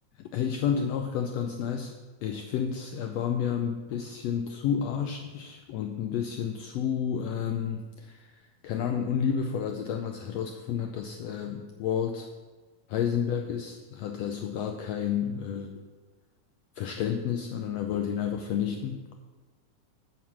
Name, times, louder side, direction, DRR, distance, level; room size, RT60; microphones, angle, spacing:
voice 1, 0.2-1.9 2.2-12.3 12.9-15.7 16.8-19.1, left 8 dB, 85° left, 5 dB, 1.5 m, -30 dB
9.4 x 5.7 x 7.3 m, 1.3 s
omnidirectional pair, 3.6 m